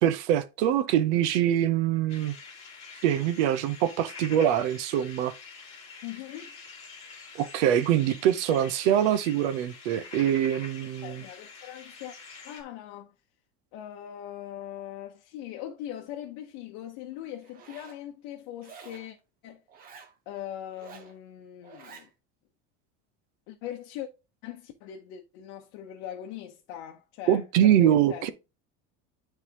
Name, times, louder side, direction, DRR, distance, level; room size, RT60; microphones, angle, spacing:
voice 1, 0.0-2.3 3.0-5.3 7.3-11.2 27.3-28.3, right 10 dB, 90° right, 0.9 m, -24 dB
sound 1, 2.1-12.6, left 5 dB, 20° left, 2.1 m, -46 dB
voice 2, 6.0-6.6 11.0-12.1 12.4-13.1 13.7-19.2 19.4-19.6 20.3-22.1 23.5-24.1 24.4-28.3, left 11 dB, 50° left, 0.9 m, -41 dB
Zipper (clothing), 17.4-18.0 18.6-19.1 19.7-20.1 20.7-21.1 21.6-22.1, right 5 dB, 25° right, 0.8 m, -49 dB
9.8 x 4.0 x 2.9 m
cardioid pair, 175°, 33 cm